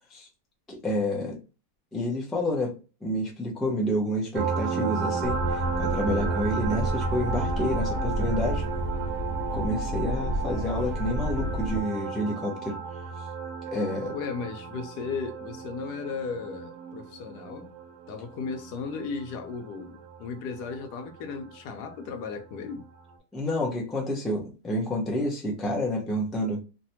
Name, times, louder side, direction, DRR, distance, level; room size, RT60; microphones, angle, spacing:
voice 1, 0.7-1.4 1.9-8.6 9.5-12.8 13.7-14.1 23.3-26.6, left 1 dB, ahead, 0.3 m, -29 dB
sound 1, 4.3-21.6 23.1-23.2, right 5 dB, 75° right, 1.2 m, -33 dB
sound 2, 5.2-11.8, equal, 45° right, 0.8 m, -31 dB
voice 2, 14.1-17.7 18.1-22.9, left 5 dB, 90° left, 1.2 m, -35 dB
3.2 x 2.1 x 2.8 m
omnidirectional pair, 1.7 m